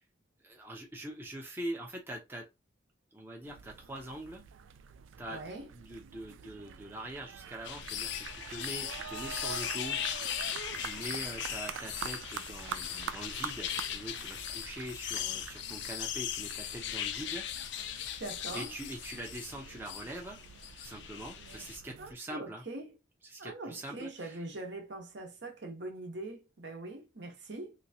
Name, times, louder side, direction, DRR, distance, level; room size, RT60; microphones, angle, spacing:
voice 1, 0.4-2.4 3.1-4.4 5.2-5.4 5.7-10.0 10.2-17.4 17.7-18.2 18.5-20.4 20.7-22.6 23.2-24.4, right 1 dB, 10° right, 0.6 m, -43 dB
sound 1, 3.4-22.1, right 7 dB, 80° right, 0.3 m, -46 dB
voice 2, 5.3-5.7 18.2-18.7 22.0-23.0 23.4-27.7, right 2 dB, 60° right, 0.9 m, -42 dB
sound 2, 7.6-21.8, left 10 dB, 65° left, 0.4 m, -39 dB
3.3 x 2.9 x 2.7 m
head